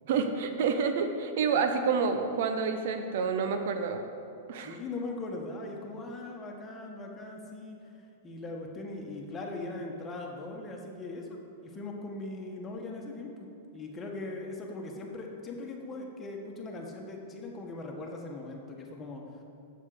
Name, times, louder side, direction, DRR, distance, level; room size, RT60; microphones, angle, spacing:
voice 1, 0.1-4.0 4.5-4.8, right 5 dB, 65° right, 7 dB, 0.8 m, -28 dB
voice 2, 4.6-7.8 8.2-13.5 13.7-19.2, left 2 dB, 25° left, 0 dB, 1.6 m, -40 dB
7.2 x 7.1 x 6.6 m, 2.7 s
hypercardioid pair, 110°, 0 cm